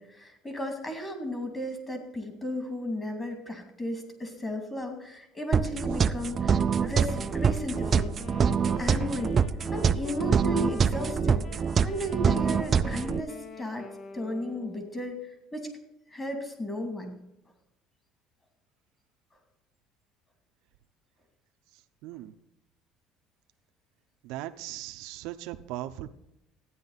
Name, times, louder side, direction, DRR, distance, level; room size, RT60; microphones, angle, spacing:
voice 1, 0.0-8.1 8.8-9.4 9.7-11.5 11.8-15.2 15.5-15.7 16.1-17.2, left 1 dB, 20° left, 4 dB, 2.6 m, -34 dB
sound 1, 5.5-13.2, right 6 dB, 30° right, 0.4 m, -25 dB
Wind instrument woodwind instrument, 7.1-15.2, left 4 dB, 45° left, 1.1 m, -44 dB
voice 2, 22.0-22.3 24.2-26.1, right 15 dB, 80° right, 8 dB, 0.7 m, -38 dB
14.0 x 9.7 x 4.1 m, 0.85 s
cardioid pair, 135°, 0 cm